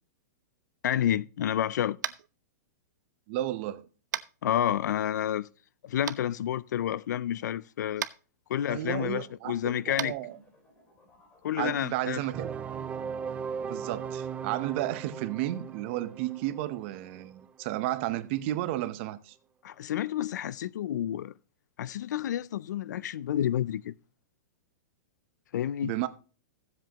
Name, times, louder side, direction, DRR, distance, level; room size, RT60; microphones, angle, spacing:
voice 1, 0.8-2.0 4.4-5.5 5.8-8.1 8.5-10.1 11.4-12.2 19.6-21.3 21.8-23.9 25.5-25.9, left 11 dB, 75° left, 0.5 m, -29 dB
Tap, 2.0-2.3 4.1-4.3 6.1-6.2 8.0-8.1 9.9-10.1, right 9 dB, 85° right, 0.6 m, -32 dB
voice 2, 3.3-3.9 8.7-10.4 11.6-12.5 13.6-19.4 25.8-26.1, right 15 dB, 40° right, 0.8 m, -33 dB
sound 1, 10.2-12.6, left 1 dB, 15° left, 2.7 m, -62 dB
sound 2, 12.3-18.0, right 6 dB, 15° right, 0.4 m, -38 dB
15.0 x 7.7 x 2.9 m
hypercardioid pair, 150°, 10 cm